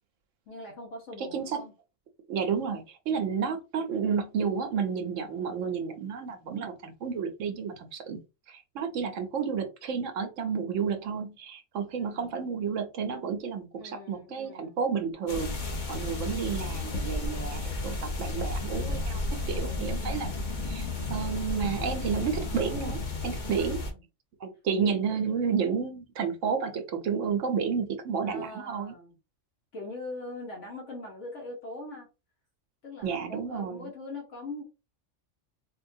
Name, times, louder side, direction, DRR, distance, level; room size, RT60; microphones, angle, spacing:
voice 1, 0.5-1.7 3.1-3.3 12.0-12.3 13.8-14.8 23.3-24.0 24.8-24.9 28.2-29.2 29.7-32.1 32.8-34.6, left 2 dB, 75° left, -1 dB, 1.4 m, -42 dB
voice 2, 1.2-1.6 2.3-8.2 8.5-19.2 19.5-20.3 20.7-23.8 24.4-28.9 33.0-33.9, right 6 dB, 90° right, 6 dB, 1.0 m, -31 dB
sound 1, 15.3-23.9, left 2 dB, 45° left, 0.9 m, -33 dB
Female singing, 18.2-23.7, right 2 dB, 50° right, 0.7 m, -49 dB
4.2 x 2.3 x 2.7 m, 0.28 s
omnidirectional pair, 1.2 m